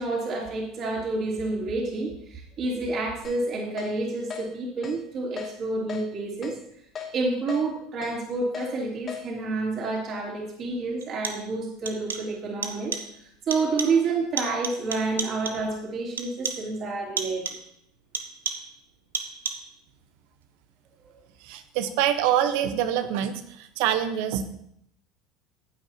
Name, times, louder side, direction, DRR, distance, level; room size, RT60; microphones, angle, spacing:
voice 1, 0.0-6.5 7.1-12.9 13.5-17.6, right 3 dB, 45° right, -3 dB, 3.4 m, -29 dB
Keyboard (musical), 3.2-3.4 3.8-3.9 4.3-4.4 4.8-5.0 5.4-5.5 5.9-6.0 6.4-6.6 7.0-7.1 7.5-7.6 8.0-8.1 8.5-8.7 9.1-9.2, left 7 dB, 40° left, 2.9 m, -36 dB
sound 1, 10.0-10.1 11.0-11.6 11.9-12.4 12.6-13.2 13.5-14.1 14.4-15.7 16.2-16.8 17.2-17.7 18.1-18.8 19.1-19.8, right 6 dB, 90° right, 0.8 m, -34 dB
voice 2, 21.4-24.4, right 10 dB, 65° right, 10 dB, 1.1 m, -25 dB
15.0 x 8.9 x 2.9 m, 0.73 s
hypercardioid pair, 75°, 0 cm